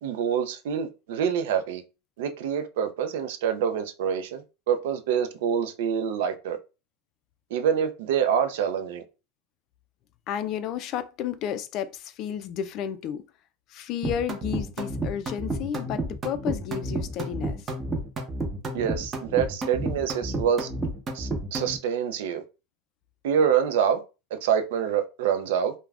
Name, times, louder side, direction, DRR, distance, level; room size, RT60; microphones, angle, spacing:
voice 1, 0.0-1.8 2.2-6.6 7.5-9.0 18.7-20.7 21.1-22.4 23.2-24.0 24.3-25.7, right 8 dB, 75° right, 0.5 m, -26 dB
voice 2, 10.3-13.3 13.7-17.7, left 9 dB, 45° left, 0.3 m, -32 dB
sound 1, 14.0-21.8, right 2 dB, 20° right, 0.7 m, -31 dB
2.4 x 2.1 x 3.3 m
supercardioid pair, 140°, 0 cm